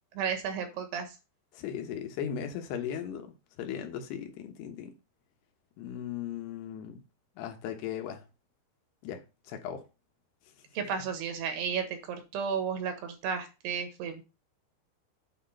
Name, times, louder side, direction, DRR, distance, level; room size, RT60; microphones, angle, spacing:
voice 1, 0.2-1.2 10.8-14.2, right 6 dB, 75° right, 3.5 m, -33 dB
voice 2, 1.5-4.9 5.8-7.0 7.4-8.2 9.0-9.8 10.8-10.9, left 9 dB, 75° left, 3.2 m, -37 dB
8.6 x 4.4 x 5.7 m
omnidirectional pair, 4.9 m